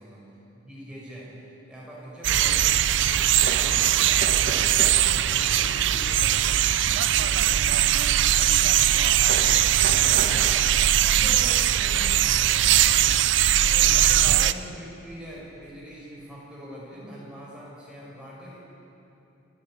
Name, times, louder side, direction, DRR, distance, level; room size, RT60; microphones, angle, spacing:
voice 1, 0.6-13.2 13.6-18.6, equal, 5° right, -6 dB, 6.3 m, -43 dB
sound 1, 2.2-14.5, right 11 dB, 70° right, 0.5 m, -20 dB
sound 2, 3.4-10.8, right 2 dB, 50° right, 1.4 m, -38 dB
29.0 x 9.9 x 9.0 m, 2.8 s
head